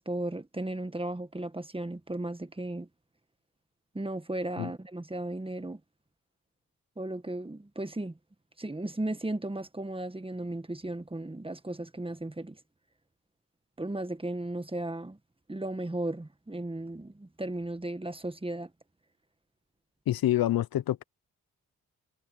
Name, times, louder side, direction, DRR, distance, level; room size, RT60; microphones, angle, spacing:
voice 1, 0.0-2.9 3.9-5.8 7.0-8.2 8.6-12.6 13.8-15.2 15.5-18.7, right 1 dB, 15° right, 1.7 m, -35 dB
voice 2, 20.1-21.0, left 13 dB, 75° left, 0.9 m, -27 dB
supercardioid pair, 50°, 36 cm